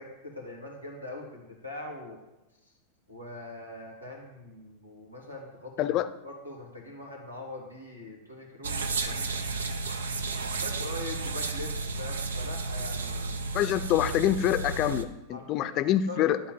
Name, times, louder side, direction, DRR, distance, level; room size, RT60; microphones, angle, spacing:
voice 1, 0.0-2.2 2.6-2.7 3.1-9.4 10.6-13.4 15.3-15.8 16.1-16.4, left 2 dB, 90° right, -2 dB, 2.8 m, -42 dB
sound 1, 8.6-15.0, right 3 dB, 65° right, 0.8 m, -32 dB
voice 2, 13.5-16.4, left 12 dB, 35° left, 12 dB, 0.6 m, -26 dB
12.0 x 4.3 x 7.3 m, 0.95 s
figure-of-eight pair, 90°, 0 cm